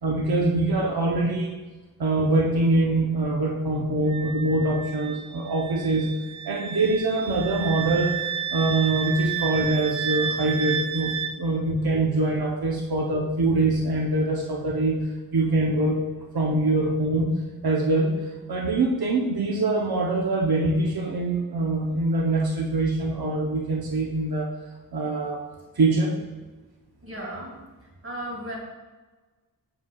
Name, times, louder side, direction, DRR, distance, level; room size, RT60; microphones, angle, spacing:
voice 1, 0.0-1.6 2.0-6.1 6.4-8.2 8.5-15.0 15.3-16.0 16.3-17.3 17.6-18.1 18.5-24.5 24.9-25.4 25.8-26.2, right 2 dB, 90° right, -1 dB, 0.7 m, -24 dB
Wind instrument woodwind instrument, 4.1-11.3, right 7 dB, 55° right, 0.4 m, -31 dB
voice 2, 27.0-27.6 28.0-28.6, right 1 dB, 35° right, -3 dB, 2.0 m, -35 dB
7.4 x 6.4 x 2.3 m, 1.2 s
wide cardioid pair, 65°, 36 cm